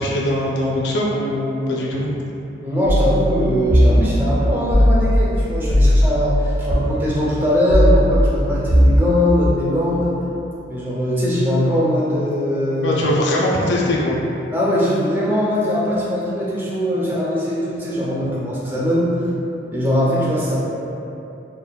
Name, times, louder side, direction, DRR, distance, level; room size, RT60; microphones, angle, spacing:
voice 1, 0.0-2.1 12.8-14.2, left 1 dB, 65° left, -4 dB, 0.3 m, -21 dB
voice 2, 2.6-10.1 10.7-13.0 14.5-19.2 19.7-20.6, equal, 10° right, -7 dB, 0.4 m, -20 dB
sound 1, 2.9-6.8 7.7-9.0, equal, 85° right, 0.8 m, -17 dB
3.4 x 2.1 x 2.2 m, 2.9 s
head